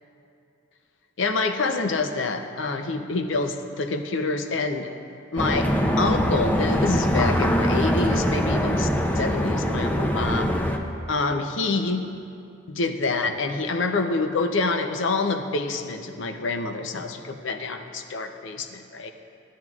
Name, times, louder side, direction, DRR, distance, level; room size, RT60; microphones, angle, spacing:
voice 1, 1.2-4.9 5.3-5.7 6.0-8.9 9.2-10.5 11.1-12.0 12.7-19.1, left 3 dB, 70° left, 6 dB, 0.6 m, -27 dB
sound 1, 5.4-10.8, equal, 10° left, 0.4 m, -23 dB
15.0 x 9.3 x 2.4 m, 2.6 s
head